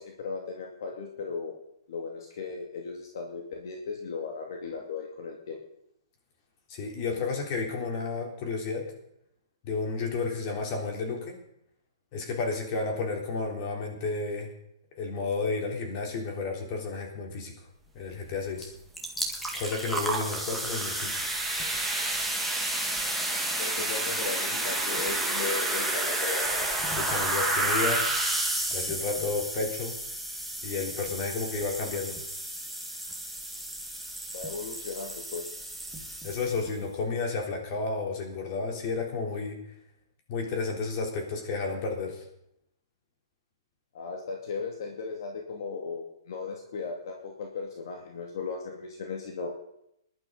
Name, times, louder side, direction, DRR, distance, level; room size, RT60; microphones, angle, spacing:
voice 1, 0.0-1.5 1.9-5.6 23.6-26.7 34.3-35.4 43.9-49.5, left 4 dB, 60° left, 1 dB, 2.4 m, -36 dB
voice 2, 6.7-8.9 9.6-11.3 12.1-14.5 15.0-17.5 17.9-18.7 19.5-21.1 26.9-28.1 28.7-30.0 30.6-32.2 36.2-39.6 40.3-42.2, left 4 dB, 35° left, 1 dB, 3.6 m, -32 dB
sound 1, 18.6-18.7 18.9-36.7, right 1 dB, ahead, 1.7 m, -31 dB
20.0 x 11.5 x 4.1 m, 0.77 s
hypercardioid pair, 155°, 2 cm